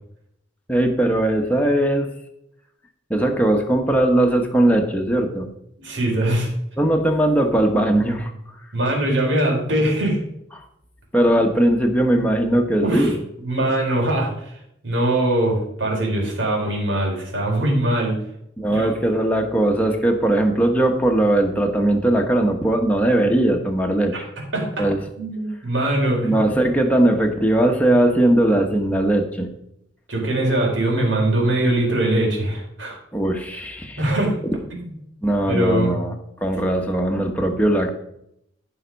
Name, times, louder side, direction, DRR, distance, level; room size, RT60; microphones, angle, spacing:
voice 1, 0.7-2.1 3.1-5.5 6.8-8.3 11.1-13.2 18.6-24.1 24.8-25.0 26.2-29.5 33.1-34.0 35.2-36.1 36.4-37.9, right 1 dB, 10° left, 2 dB, 1.3 m, -19 dB
voice 2, 5.8-6.5 8.7-10.2 12.8-13.1 13.4-14.5 14.8-18.1 18.7-18.9 24.5-24.9 25.2-26.3 30.1-32.9 34.0-34.3 34.7-34.8 35.5-35.9, right 1 dB, 75° right, -1 dB, 4.9 m, -21 dB
15.0 x 5.9 x 5.4 m, 0.76 s
head